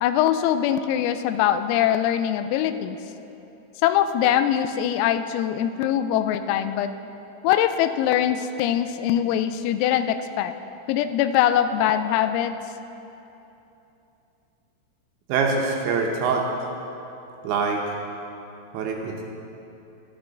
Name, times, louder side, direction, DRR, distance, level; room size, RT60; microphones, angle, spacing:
voice 1, 0.0-3.0 3.8-6.9 7.4-10.5 10.9-12.6, left 10 dB, 85° left, 10 dB, 3.3 m, -22 dB
voice 2, 15.3-16.4 17.4-17.8 18.7-19.2, right 4 dB, 75° right, 0 dB, 2.8 m, -24 dB
13.5 x 12.0 x 3.9 m, 2.9 s
omnidirectional pair, 5.9 m